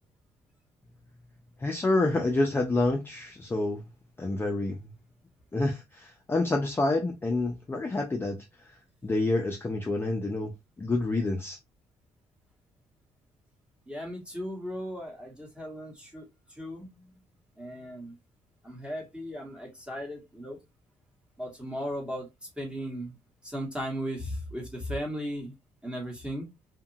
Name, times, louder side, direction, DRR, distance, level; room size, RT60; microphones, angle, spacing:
voice 1, 1.6-3.8 4.2-4.8 5.5-8.4 9.0-10.5 10.8-11.6, left 2 dB, 15° left, 0.5 m, -28 dB
voice 2, 13.9-16.2 16.6-17.0 17.6-18.1 18.6-20.6 21.4-22.3 22.6-23.2 23.4-25.5 25.8-26.5, equal, 10° right, 1.1 m, -36 dB
2.8 x 2.5 x 2.6 m
cardioid pair, 125°, 13 cm